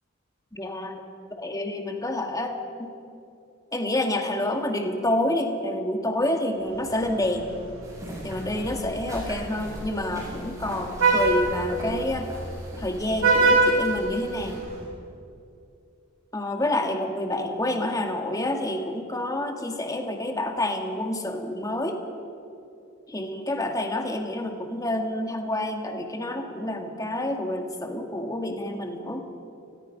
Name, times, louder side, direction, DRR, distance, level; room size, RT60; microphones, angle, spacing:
voice 1, 0.5-0.9 1.3-2.5 2.8-2.9 3.7-7.5 8.2-12.3 12.8-14.7 16.3-22.0 23.1-29.3, left 1 dB, 15° left, 3 dB, 2.1 m, -28 dB
Vehicle horn car horn honking, 6.7-14.8, right 3 dB, 85° right, 5.4 m, -27 dB
sound 1, 7.8-14.6, equal, 15° right, 7.5 m, -40 dB
29.0 x 21.5 x 5.4 m, 2.6 s
head